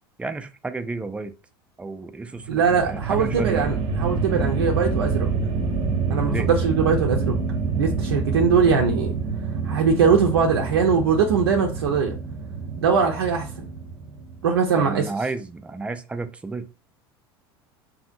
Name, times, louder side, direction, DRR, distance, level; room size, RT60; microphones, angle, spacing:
voice 1, 0.2-1.3 1.8-3.7 6.3-6.5 14.8-16.6, right 3 dB, 10° right, 0.3 m, -32 dB
sound 1, 2.4-14.7, right 4 dB, 40° right, 0.7 m, -27 dB
voice 2, 2.5-5.3 6.1-7.4 7.8-9.2 9.6-12.2 12.8-13.5 14.4-15.1, right 5 dB, 85° right, 0.5 m, -21 dB
2.7 x 2.6 x 2.5 m
hypercardioid pair, 85°, 13 cm